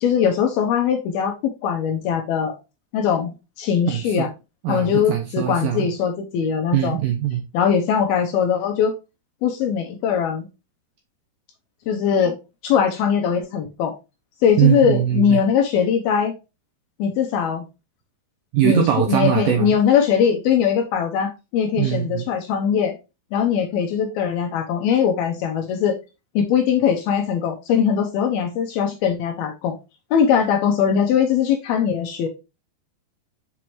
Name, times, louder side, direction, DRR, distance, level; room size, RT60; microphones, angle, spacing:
voice 1, 0.0-1.4 1.6-2.5 2.9-4.3 4.7-7.0 7.5-8.9 9.4-10.5 11.9-12.4 12.6-13.9 14.4-16.3 17.0-17.7 18.6-22.9 23.3-25.9 26.4-29.8 30.1-32.3, left 7 dB, 75° left, 2.5 m, -21 dB
voice 2, 3.9-4.3 4.6-5.9 6.7-7.4 14.6-15.4 18.5-19.8 21.8-22.3, right 11 dB, 85° right, 2.0 m, -21 dB
7.0 x 4.8 x 3.0 m
omnidirectional pair, 5.0 m